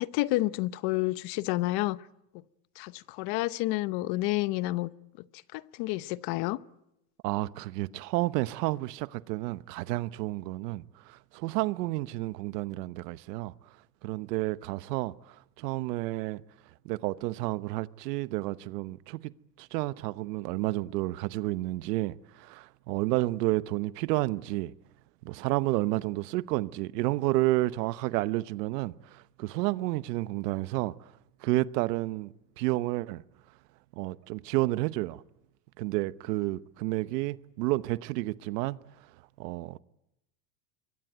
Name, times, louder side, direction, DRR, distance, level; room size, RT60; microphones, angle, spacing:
voice 1, 0.0-2.0 2.8-4.9 5.5-6.6, left 19 dB, 55° left, 0.9 m, -29 dB
voice 2, 7.2-13.5 14.0-16.4 16.8-19.3 19.6-24.7 25.2-31.1 31.4-33.2 33.9-35.2 35.8-38.8 39.4-39.8, right 19 dB, 75° right, 1.0 m, -31 dB
25.5 x 23.5 x 9.1 m
supercardioid pair, 125°, 49 cm